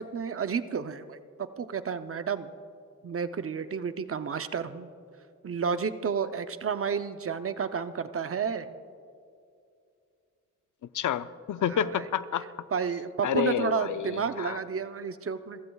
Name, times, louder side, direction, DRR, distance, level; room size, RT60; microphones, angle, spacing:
voice 1, 0.0-2.5 3.0-4.9 5.4-8.7 11.7-12.1 12.7-15.6, right 6 dB, 45° right, 10 dB, 0.6 m, -31 dB
voice 2, 10.9-12.5 13.2-14.6, left 9 dB, 75° left, 13 dB, 0.6 m, -29 dB
30.0 x 15.0 x 2.3 m, 2.4 s
wide cardioid pair, 105°, 31 cm